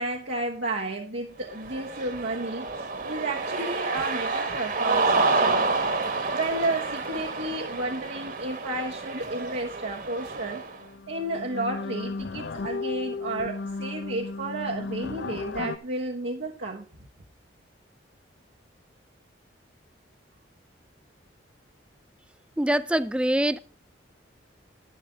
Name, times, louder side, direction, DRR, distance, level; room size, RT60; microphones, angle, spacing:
voice 1, 0.0-5.6 6.3-10.6 11.1-16.8, right 2 dB, 65° right, 1.2 m, -32 dB
Cheering, 1.5-10.8, right 3 dB, 45° right, 1.6 m, -29 dB
sound 1, 10.4-10.5 10.8-15.8, left 3 dB, 65° left, 0.6 m, -34 dB
voice 2, 22.6-23.6, right 1 dB, 5° right, 0.4 m, -24 dB
11.0 x 11.0 x 3.6 m
head